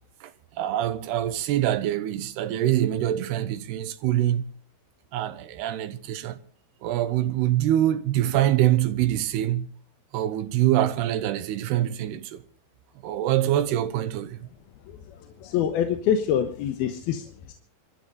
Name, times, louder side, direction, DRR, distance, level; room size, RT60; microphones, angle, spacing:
voice 1, 0.6-4.4 5.1-6.4 6.8-9.7 10.1-12.4 13.0-14.4, right 12 dB, 90° right, 3.1 m, -24 dB
voice 2, 15.4-17.5, left 9 dB, 75° left, 3.0 m, -25 dB
25.5 x 13.0 x 4.1 m
omnidirectional pair, 4.6 m